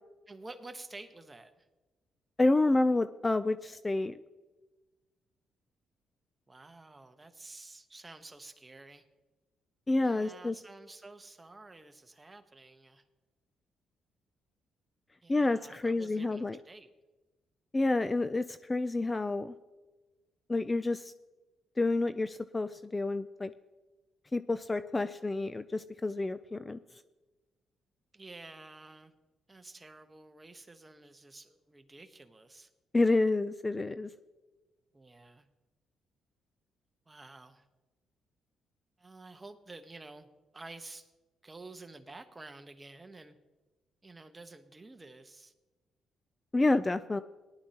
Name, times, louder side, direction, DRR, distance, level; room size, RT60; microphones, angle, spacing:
voice 1, 0.3-1.7 6.5-9.0 10.0-13.0 15.2-16.9 28.1-29.1 29.5-32.7 34.9-35.5 37.1-37.7 39.0-40.3 40.5-41.1 41.4-43.4 44.0-45.5, right 2 dB, 20° right, 8 dB, 1.1 m, -50 dB
voice 2, 2.4-4.2 9.9-10.6 15.3-16.6 17.7-19.5 20.5-21.1 21.8-23.5 24.3-26.8 32.9-34.1 46.5-47.2, left 2 dB, 20° left, 12 dB, 0.4 m, -29 dB
18.5 x 11.5 x 2.9 m, 1.2 s
cardioid pair, 90°, 0 cm